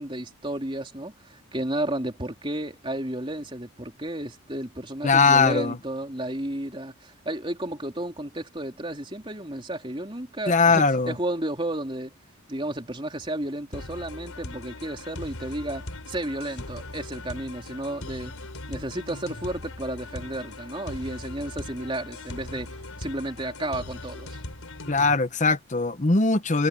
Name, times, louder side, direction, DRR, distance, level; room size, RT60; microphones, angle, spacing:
voice 1, 0.0-12.1 12.5-18.3 18.7-24.4, right 1 dB, 25° right, 3.4 m, -32 dB
voice 2, 5.0-5.8 10.5-11.1 24.9-26.7, left 4 dB, 35° left, 0.9 m, -20 dB
sound 1, 13.7-25.1, left 2 dB, 85° left, 4.7 m, -39 dB
head